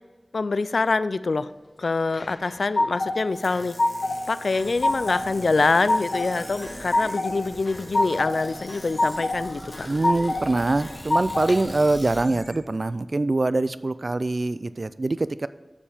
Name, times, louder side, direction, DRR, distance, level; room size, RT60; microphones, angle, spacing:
voice 1, 0.3-1.5 1.8-3.8 4.3-9.9, left 3 dB, 85° left, 15 dB, 0.3 m, -25 dB
sound 1, 2.1-3.1 3.5-4.2 4.5-5.2 5.6-6.3 6.6-7.3 7.7-8.3 8.7-9.4 9.7-10.4 10.8-11.6, left 2 dB, 65° left, 1.3 m, -25 dB
sound 2, 3.3-12.2, left 1 dB, 30° left, 2.3 m, -44 dB
sound 3, 4.6-12.6, equal, ahead, 1.7 m, -43 dB
voice 2, 9.8-15.5, right 2 dB, 55° right, 15 dB, 0.4 m, -24 dB
7.2 x 6.8 x 5.6 m, 1.3 s
wide cardioid pair, 55°, 0 cm